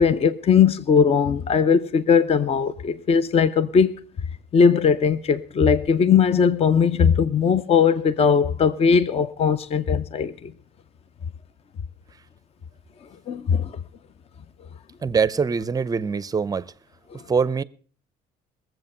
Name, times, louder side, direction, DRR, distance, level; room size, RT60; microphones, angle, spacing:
voice 1, 0.0-4.0 4.5-10.5 13.3-13.7, left 6 dB, 35° left, 0.6 m, -19 dB
voice 2, 15.0-16.7 17.3-17.6, right 5 dB, 20° right, 0.5 m, -23 dB
20.5 x 7.7 x 5.4 m
cardioid pair, 110°, 17 cm